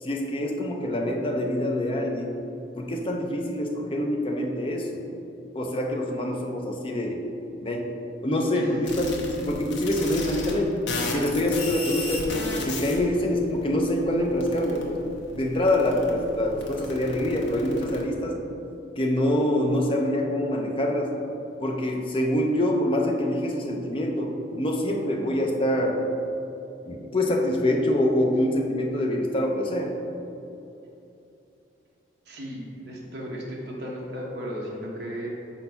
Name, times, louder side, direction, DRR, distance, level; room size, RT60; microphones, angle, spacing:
voice 1, 0.0-2.4 2.7-5.0 5.5-7.2 7.6-7.8 8.2-10.7 11.1-15.0 15.3-18.4 19.0-21.1 21.6-26.0 26.9-29.9, left 1 dB, 30° left, 1 dB, 0.6 m, -25 dB
sound 1, 8.8-10.6 10.9-18.0, left 3 dB, 70° left, 0.9 m, -35 dB
voice 2, 32.3-35.3, equal, 60° right, -3 dB, 1.1 m, -35 dB
4.7 x 4.3 x 5.4 m, 2.8 s
head